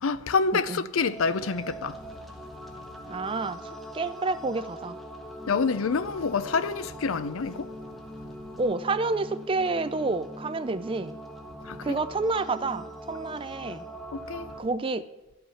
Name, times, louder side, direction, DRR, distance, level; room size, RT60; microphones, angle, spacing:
voice 1, 0.0-2.0 5.5-7.7 11.6-12.0 14.1-14.5, left 4 dB, 85° left, 0.6 m, -27 dB
voice 2, 0.5-0.8 3.1-3.6 3.9-5.0 8.6-11.2 11.8-13.8 14.6-15.0, right 3 dB, 25° right, 0.4 m, -29 dB
sound 1, 1.0-14.6, equal, ahead, 0.9 m, -42 dB
12.5 x 5.5 x 5.6 m
head